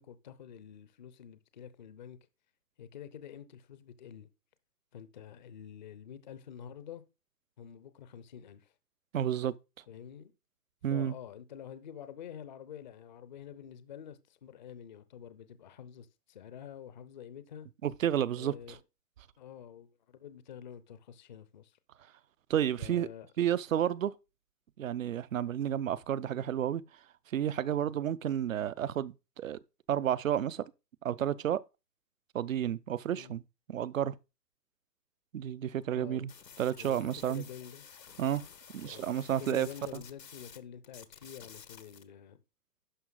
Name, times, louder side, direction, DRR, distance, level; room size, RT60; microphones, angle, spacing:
voice 1, 0.0-2.2 2.8-4.3 4.9-7.0 7.6-8.7 9.9-10.3 10.9-17.7 18.3-18.8 19.4-21.8 22.8-23.3 33.1-33.3 35.9-36.3 36.8-37.9 38.8-39.1 39.4-42.4, left 9 dB, 30° left, 0.6 m, -48 dB
voice 2, 9.1-9.5 10.8-11.1 17.8-18.5 22.5-23.1 23.4-24.1 24.8-26.8 27.3-29.6 29.9-30.6 31.0-31.6 32.3-33.4 33.7-34.1 35.3-36.3 36.6-37.4 38.2-38.4 38.7-39.7, right 10 dB, 55° right, 0.6 m, -31 dB
sound 1, 36.3-40.6 40.8-42.0, left 7 dB, 90° left, 1.4 m, -52 dB
11.0 x 5.6 x 3.9 m
hypercardioid pair, 145°, 48 cm